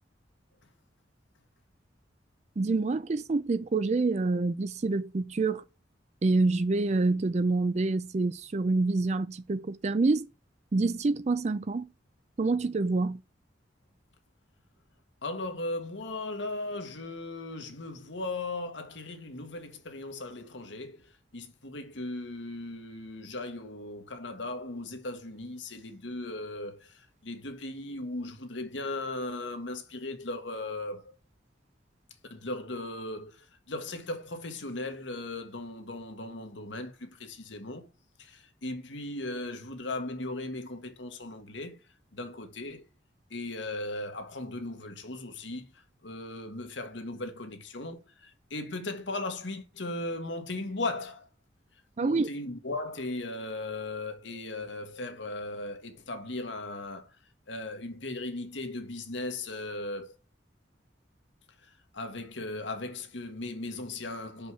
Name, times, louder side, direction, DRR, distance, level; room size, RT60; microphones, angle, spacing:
voice 1, 2.6-5.7 6.2-10.3 10.7-11.9 12.4-13.2 52.0-52.3, right 3 dB, 35° right, 0.4 m, -27 dB
voice 2, 15.2-31.1 32.3-37.9 38.2-41.8 42.1-42.8 43.3-45.7 46.0-51.3 52.0-57.2 57.5-60.1 61.9-64.5, left 2 dB, 80° left, 1.5 m, -37 dB
6.3 x 5.4 x 6.1 m
head